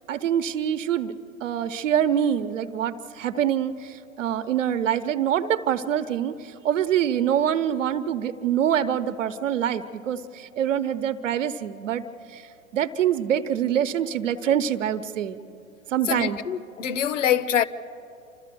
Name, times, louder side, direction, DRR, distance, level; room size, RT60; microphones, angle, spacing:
voice 1, 0.1-1.1 1.4-12.0 12.3-12.4 12.7-15.4 15.9-16.4, right 9 dB, 65° right, 1.0 m, -25 dB
voice 2, 16.1-17.6, left 9 dB, 65° left, 0.9 m, -24 dB
28.5 x 13.5 x 6.8 m
figure-of-eight pair, 105°, 41 cm